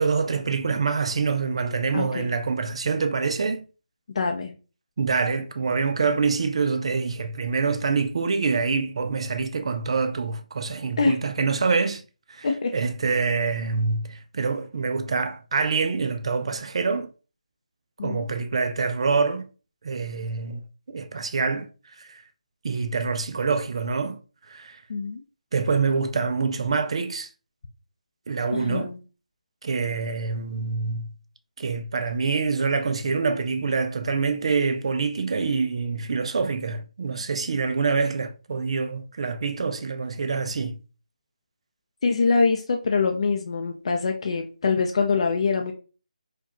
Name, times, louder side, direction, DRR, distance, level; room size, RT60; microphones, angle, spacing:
voice 1, 0.0-3.6 5.0-12.0 12.3-12.5 12.7-17.1 18.0-19.5 19.8-20.6 20.9-21.7 22.0-22.2 22.6-24.2 24.5-24.8 25.5-27.3 28.3-28.9 29.6-31.1 31.6-40.8, right 4 dB, 45° right, 0.3 m, -26 dB
voice 2, 1.9-2.3 4.1-4.5 11.0-11.2 12.4-12.7 18.0-18.2 24.9-25.2 28.5-29.0 42.0-45.7, left 4 dB, 45° left, 0.5 m, -24 dB
4.7 x 2.2 x 2.7 m
figure-of-eight pair, 165°, 4 cm